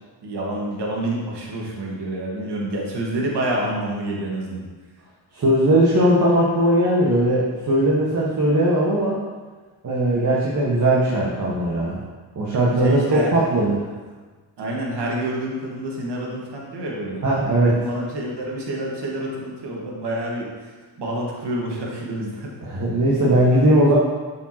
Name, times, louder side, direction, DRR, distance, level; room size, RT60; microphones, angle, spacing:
voice 1, 0.2-4.6 12.5-13.3 14.6-17.2 17.7-22.5, right 1 dB, 60° right, -2 dB, 1.8 m, -28 dB
voice 2, 5.3-9.2 9.8-12.0 12.3-13.8 17.2-17.8 22.6-24.0, right 1 dB, 40° right, -5 dB, 1.5 m, -19 dB
6.8 x 4.9 x 3.0 m, 1.3 s
supercardioid pair, 55°, 46 cm